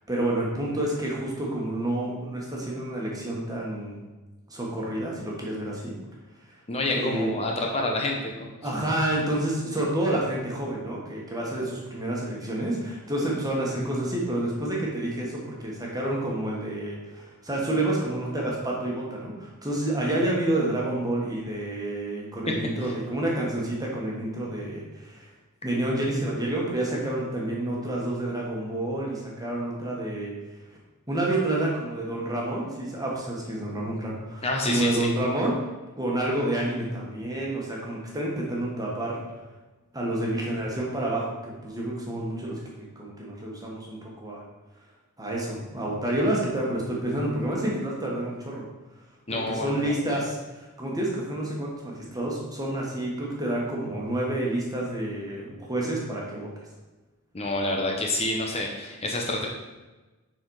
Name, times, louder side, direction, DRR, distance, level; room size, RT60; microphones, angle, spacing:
voice 1, 0.1-4.0 4.5-5.9 6.9-7.3 8.6-25.3 25.6-30.3 31.1-35.7 36.0-39.2 39.9-44.4 45.2-48.6 49.3-56.5, right 1 dB, 15° right, -3 dB, 1.6 m, -29 dB
voice 2, 6.7-8.5 22.8-22.9 34.4-35.2 49.3-49.7 57.3-59.5, left 2 dB, 30° left, 1 dB, 0.8 m, -28 dB
6.7 x 4.3 x 4.8 m, 1.2 s
head